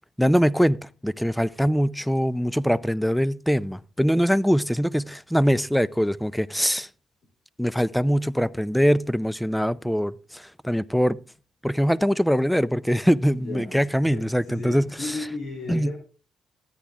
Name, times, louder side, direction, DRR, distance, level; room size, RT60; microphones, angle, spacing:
voice 1, 0.2-6.9 7.6-11.2 11.6-15.1 15.7-15.9, equal, ahead, 0.5 m, -23 dB
voice 2, 13.3-16.0, left 2 dB, 65° left, 3.4 m, -35 dB
13.5 x 10.0 x 3.5 m
cardioid pair, 90°, 0 cm